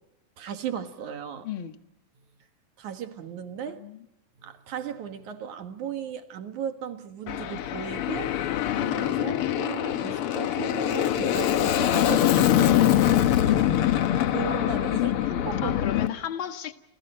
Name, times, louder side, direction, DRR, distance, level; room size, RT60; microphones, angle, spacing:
voice 1, 0.4-1.5 2.8-3.8 4.4-8.3 8.7-12.8 14.2-15.8, right 8 dB, 70° right, 3.0 m, -36 dB
voice 2, 1.4-1.8 3.7-4.0 14.9-16.7, left 10 dB, 50° left, 1.9 m, -34 dB
Aircraft, 7.3-16.1, left 11 dB, 65° left, 1.4 m, -24 dB
29.5 x 29.5 x 4.5 m
omnidirectional pair, 3.7 m